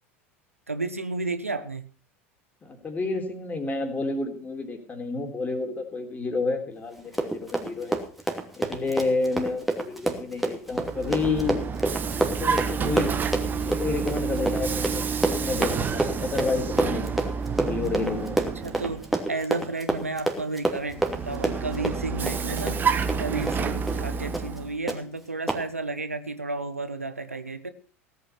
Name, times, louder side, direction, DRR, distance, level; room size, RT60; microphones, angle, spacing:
voice 1, 0.7-1.9 18.6-22.8 23.2-27.7, right 3 dB, 85° right, 11 dB, 1.1 m, -32 dB
voice 2, 2.6-8.0 8.6-11.6 12.4-13.1 13.6-15.0 15.3-18.4 23.6-23.7, left 3 dB, 20° left, 5 dB, 3.6 m, -30 dB
Run, 7.0-23.6 23.9-24.0 24.3-24.6 24.9-25.0 25.5-25.6, right 2 dB, ahead, 2.9 m, -28 dB
Vehicle, 10.7-19.2 20.9-24.8, right 6 dB, 25° right, 1.4 m, -29 dB
17.0 x 8.9 x 5.8 m, 0.41 s
figure-of-eight pair, 80°, 7 cm